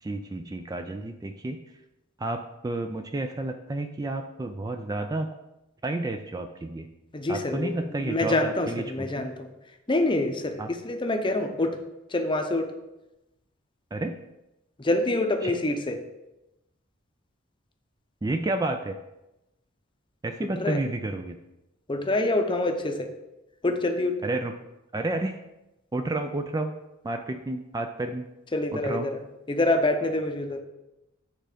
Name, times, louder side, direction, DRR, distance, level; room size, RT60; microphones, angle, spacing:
voice 1, 0.0-1.6 2.2-5.3 5.8-6.9 7.3-9.2 10.6-10.7 13.9-14.2 15.4-15.5 18.2-19.0 20.2-21.4 24.2-24.5 24.9-25.4 25.9-26.7 27.0-28.2 28.7-29.1, right 2 dB, 20° right, 6 dB, 0.3 m, -30 dB
voice 2, 7.1-9.5 9.9-11.8 12.1-12.7 14.8-16.0 20.6-20.8 21.9-23.1 23.6-24.2 28.5-30.6, left 2 dB, 25° left, 5 dB, 0.7 m, -26 dB
9.1 x 3.8 x 5.0 m, 0.95 s
head